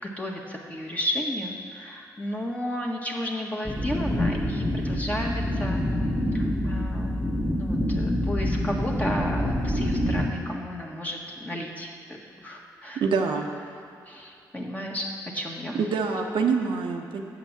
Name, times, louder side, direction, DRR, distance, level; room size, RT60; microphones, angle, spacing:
voice 1, 0.2-5.9 6.3-11.9 12.4-13.0 14.1-15.1 15.3-15.8, equal, 15° left, -1 dB, 1.7 m, -33 dB
sound 1, 3.7-10.3, left 1 dB, 5° right, 1.4 m, -26 dB
voice 2, 13.0-13.5 15.7-17.2, right 5 dB, 70° right, 2 dB, 0.8 m, -25 dB
7.9 x 5.8 x 7.4 m, 2.6 s
supercardioid pair, 45°, 9 cm